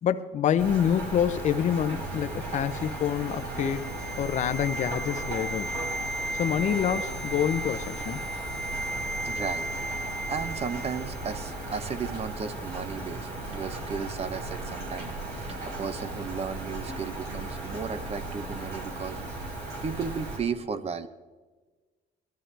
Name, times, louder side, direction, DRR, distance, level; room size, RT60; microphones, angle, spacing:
voice 1, 0.0-3.9 4.2-5.8 6.3-8.2, left 9 dB, 45° left, 11 dB, 0.6 m, -27 dB
Rain, 0.6-20.4, right 2 dB, 85° right, 4.1 m, -36 dB
sound 1, 2.1-11.4 11.6-11.8, right 1 dB, 5° left, 0.5 m, -36 dB
voice 2, 9.2-9.7 10.3-15.1 15.6-19.2 19.8-21.1, right 6 dB, 40° right, 12 dB, 0.8 m, -34 dB
18.5 x 12.5 x 3.4 m, 1.3 s
cardioid pair, 110°, 17 cm